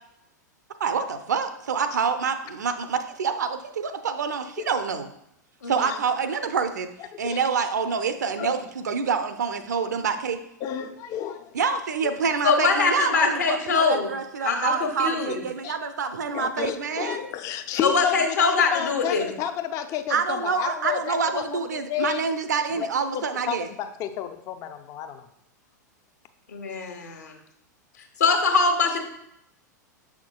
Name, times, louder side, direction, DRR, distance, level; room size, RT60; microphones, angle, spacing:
voice 1, 0.8-5.1 5.7-6.9 7.2-10.4 11.5-17.2 20.1-23.7, right 5 dB, 65° right, 9 dB, 0.6 m, -27 dB
voice 2, 5.6-5.9 12.4-14.1 14.4-15.4 17.8-19.3 26.5-27.0 28.2-29.0, left 4 dB, 65° left, 4 dB, 1.1 m, -22 dB
voice 3, 10.6-11.5 12.0-12.1 15.6-15.7 16.3-22.2 22.8-22.9 23.1-25.2, left 10 dB, 30° left, 9 dB, 0.5 m, -31 dB
7.2 x 5.8 x 2.3 m, 0.78 s
figure-of-eight pair, 95°, 10 cm